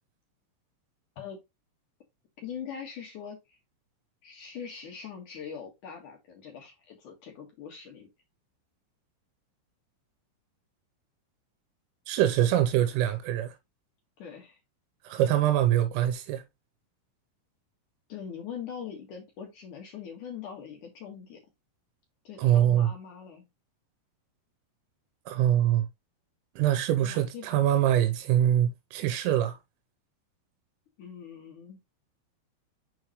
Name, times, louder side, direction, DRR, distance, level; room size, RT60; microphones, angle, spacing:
voice 1, 2.4-3.6 4.2-8.1 14.2-14.6 18.1-21.4 22.2-23.5 26.9-27.7 31.0-31.8, left 7 dB, 60° left, 2.2 m, -42 dB
voice 2, 12.1-13.5 15.0-16.4 22.4-22.9 25.3-25.9 26.6-29.6, right 11 dB, 85° right, 3.2 m, -24 dB
7.1 x 4.8 x 3.0 m
omnidirectional pair, 5.8 m